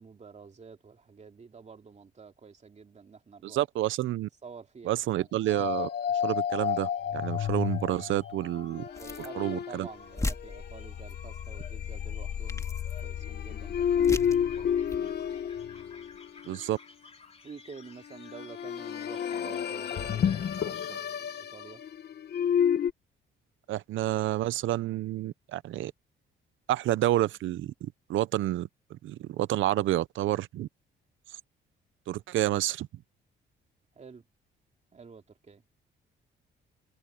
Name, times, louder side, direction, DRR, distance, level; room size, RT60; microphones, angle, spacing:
voice 1, 0.0-3.6 4.4-5.3 8.9-15.1 17.4-21.8 33.9-34.2 34.9-35.6, right 5 dB, 35° right, 2.9 m, -49 dB
voice 2, 3.4-4.3 4.9-5.9 6.2-8.9 9.3-9.9 16.5-16.8 23.7-25.9 26.7-30.7 32.1-32.9, right 14 dB, 80° right, 0.8 m, -29 dB
sound 1, 5.3-21.9, left 4 dB, 30° left, 2.6 m, -56 dB
sound 2, 5.5-16.6 18.1-22.9, left 8 dB, 55° left, 1.1 m, -31 dB
sound 3, 7.4-7.8 8.9-9.4 9.8-9.9 10.1-11.1 12.0-12.1 12.5-13.0 14.0-14.5 14.9-15.0, left 2 dB, 15° left, 2.7 m, -37 dB
cardioid pair, 90°, 20 cm